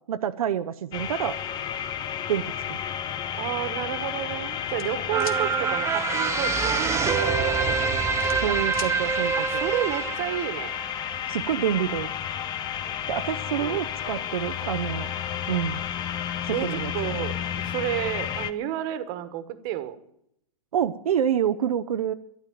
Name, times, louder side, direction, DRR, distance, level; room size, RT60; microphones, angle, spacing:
voice 1, 0.1-1.4 2.3-2.8 8.4-9.6 11.3-12.1 13.1-15.1 15.5-15.8 16.4-17.2 20.7-22.1, right 9 dB, 85° right, 9 dB, 0.7 m, -27 dB
sound 1, 0.9-18.5, left 9 dB, 25° left, 0.7 m, -31 dB
voice 2, 3.3-8.6 9.4-10.8 13.5-13.8 16.5-20.0, right 12 dB, 45° right, 12 dB, 1.4 m, -32 dB
sound 2, 4.8-5.4 7.1-7.3 7.7-8.9, left 7 dB, 75° left, 1.7 m, -38 dB
sound 3, 5.1-11.7 12.2-12.3, right 7 dB, 15° right, 0.6 m, -27 dB
12.5 x 11.5 x 9.0 m, 0.74 s
hypercardioid pair, 135°, 18 cm